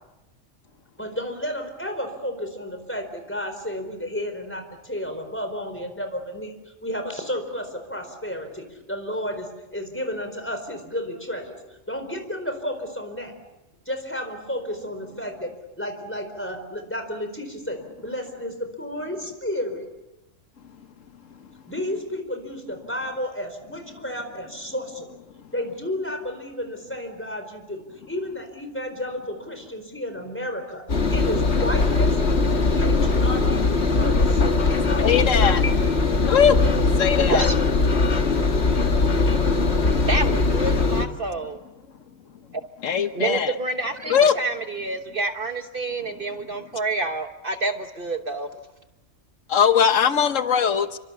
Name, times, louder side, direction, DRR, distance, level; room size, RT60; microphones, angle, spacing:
voice 1, 1.0-6.5 6.8-11.6 11.9-13.3 13.9-19.9 21.7-25.2 25.5-30.8 31.1-32.2 32.5-33.7 34.0-35.7, left 1 dB, 10° left, 4.4 m, -32 dB
Engine, 30.9-41.1, left 3 dB, 60° left, 2.0 m, -20 dB
voice 2, 35.0-35.6 36.3-36.6 37.0-37.4 42.8-43.5 44.1-44.3 49.5-51.0, left 7 dB, 90° left, 1.4 m, -20 dB
voice 3, 40.1-41.6 43.1-48.6, right 3 dB, 45° right, 1.3 m, -28 dB
28.0 x 25.0 x 7.1 m
omnidirectional pair, 1.3 m